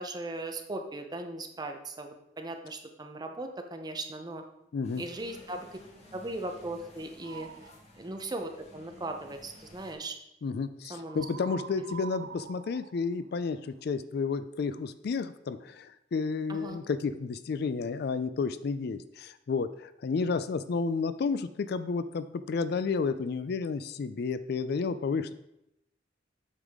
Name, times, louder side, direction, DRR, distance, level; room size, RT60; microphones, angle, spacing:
voice 1, 0.0-4.4 5.0-5.7 6.1-7.5 8.0-10.1 10.9-11.3 11.9-12.0 16.5-16.8, right 2 dB, 25° right, 5 dB, 0.7 m, -38 dB
voice 2, 4.7-5.0 10.4-25.3, left 4 dB, 60° left, 13 dB, 0.4 m, -31 dB
sound 1, 4.8-9.9, left 1 dB, 40° left, 1.3 m, -54 dB
sound 2, 7.2-7.8 11.1-13.8, right 7 dB, 65° right, 0.3 m, -45 dB
8.1 x 5.6 x 3.6 m, 0.84 s
head